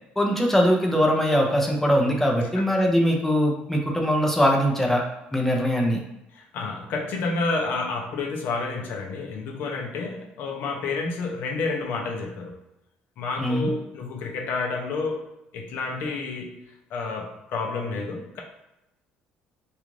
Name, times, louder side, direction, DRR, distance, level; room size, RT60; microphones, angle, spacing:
voice 1, 0.2-5.0 5.3-6.0 13.4-13.7, equal, 10° left, 0 dB, 0.6 m, -21 dB
voice 2, 6.3-12.6 13.2-15.3 15.5-16.6 16.9-18.4, left 3 dB, 65° left, 1 dB, 0.6 m, -30 dB
2.4 x 2.4 x 3.1 m, 0.91 s
supercardioid pair, 90°, 4 cm